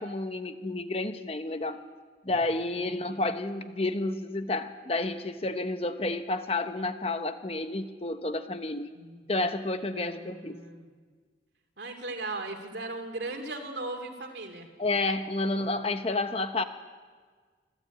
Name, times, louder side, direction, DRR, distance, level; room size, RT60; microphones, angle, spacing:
voice 1, 0.0-1.8 2.2-8.9 9.3-10.6 14.8-16.6, left 2 dB, 35° left, 9 dB, 1.0 m, -30 dB
voice 2, 8.9-9.2 9.9-10.9 11.8-14.7, right 2 dB, 70° right, 5 dB, 2.7 m, -38 dB
26.0 x 12.5 x 8.5 m, 1.5 s
head